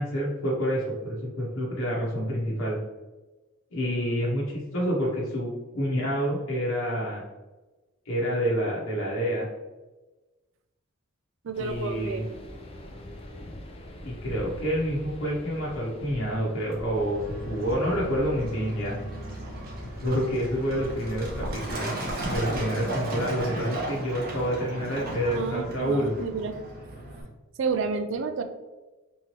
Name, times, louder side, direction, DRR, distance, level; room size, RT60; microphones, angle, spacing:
voice 1, 0.0-2.8 3.7-7.2 8.1-9.5 11.6-12.2 14.0-17.2 17.4-18.9 20.0-21.9 22.2-26.1, equal, 75° left, -5 dB, 0.9 m, -28 dB
voice 2, 11.4-12.3 25.3-26.6 27.6-28.4, right 4 dB, 60° right, 8 dB, 0.4 m, -30 dB
sound 1, 11.5-24.1, left 1 dB, 25° left, 0.4 m, -42 dB
Truck, 17.0-27.2, right 1 dB, 45° right, 0.8 m, -35 dB
3.6 x 3.1 x 2.9 m, 1.2 s
head